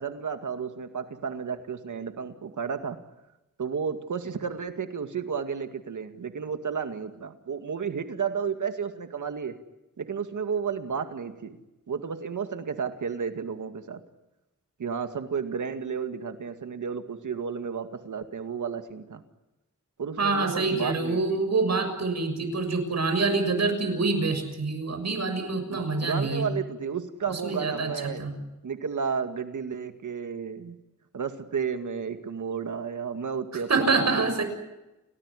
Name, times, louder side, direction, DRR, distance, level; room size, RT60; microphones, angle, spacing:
voice 1, 0.0-3.0 3.6-9.6 10.0-11.6 11.9-14.0 14.8-19.2 20.0-21.4 25.7-28.3 28.6-30.8 31.1-34.4, right 6 dB, 80° right, 8 dB, 2.2 m, -32 dB
voice 2, 20.2-26.5 27.4-28.3 33.7-34.4, right 3 dB, 60° right, 7 dB, 6.6 m, -26 dB
29.5 x 19.0 x 10.0 m, 0.98 s
wide cardioid pair, 120°, 30 cm